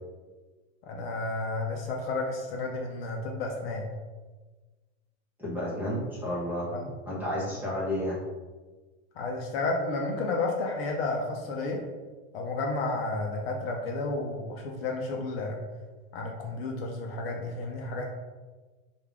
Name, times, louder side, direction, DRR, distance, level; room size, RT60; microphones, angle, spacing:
voice 1, 0.9-3.9 6.7-6.9 9.2-11.8 12.3-15.6 16.1-18.1, left 3 dB, 50° left, 0 dB, 0.7 m, -31 dB
voice 2, 5.4-6.7 7.0-8.2, left 1 dB, 5° right, -8 dB, 0.9 m, -31 dB
5.3 x 2.4 x 3.4 m, 1.3 s
supercardioid pair, 165°, 39 cm